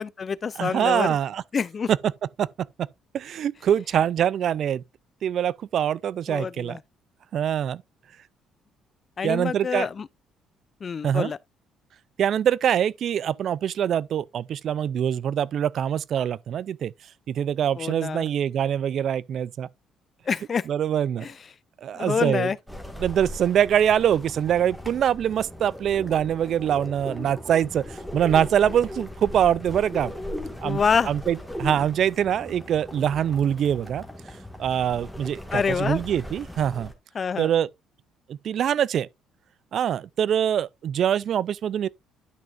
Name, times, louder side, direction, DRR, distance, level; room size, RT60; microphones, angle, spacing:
voice 1, 0.0-1.1 1.5-1.9 6.3-6.8 9.2-10.1 10.8-11.4 17.8-18.3 20.3-20.7 21.2-21.3 21.9-22.6 30.6-31.1 35.5-36.0 37.1-37.5, left 6 dB, 35° left, 0.4 m, -26 dB
voice 2, 0.6-1.4 1.9-2.0 2.4-2.5 2.8-2.9 3.1-4.8 5.2-6.8 7.3-7.8 9.2-9.9 11.0-11.3 12.2-16.9 17.3-19.7 20.7-21.3 21.8-22.5 23.0-30.1 30.6-34.1 34.6-36.9 37.4-37.7 38.3-39.1 39.7-41.9, right 9 dB, 55° right, 0.3 m, -24 dB
sound 1, 22.7-36.9, left 1 dB, ahead, 1.6 m, -38 dB
10.5 x 6.1 x 2.4 m
cardioid pair, 125°, 0 cm